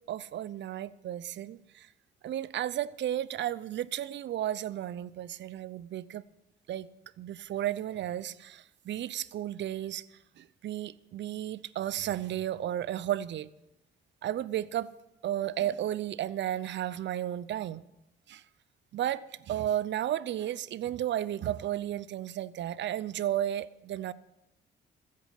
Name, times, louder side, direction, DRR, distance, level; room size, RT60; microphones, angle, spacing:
voice 1, 0.1-1.9 2.2-6.3 6.7-6.9 7.2-10.0 10.4-13.5 14.2-14.9 15.2-17.8 18.3-18.4 18.9-24.1, right 12 dB, 65° right, 0.6 m, -33 dB
15.5 x 8.4 x 9.3 m
cardioid pair, 90°, 20 cm